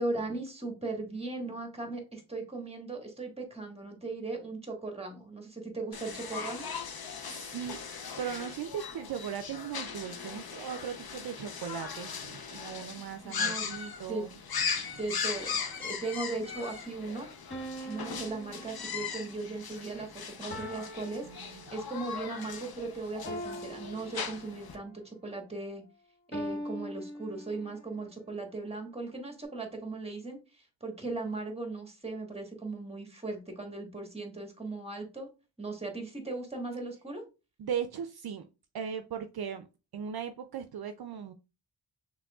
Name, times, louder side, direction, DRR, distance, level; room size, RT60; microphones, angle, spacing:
voice 1, 0.0-6.7 13.2-13.7 14.1-14.2 15.0-17.3 17.8-25.8 26.3-35.3 35.6-37.2, right 3 dB, 15° right, 2 dB, 1.4 m, -38 dB
sound 1, 5.9-24.8, left 6 dB, 60° left, 0.8 m, -39 dB
voice 2, 7.3-7.8 8.2-14.3 14.7-14.9 21.2-21.6 37.6-38.5 38.7-39.7 39.9-41.3, right 8 dB, 65° right, 8 dB, 0.5 m, -38 dB
sound 2, 15.3-16.2 17.5-19.4 20.5-22.1 23.3-24.9 26.3-27.9, equal, 30° left, 0.9 m, -42 dB
6.1 x 3.4 x 2.3 m, 0.30 s
wide cardioid pair, 115°, 41 cm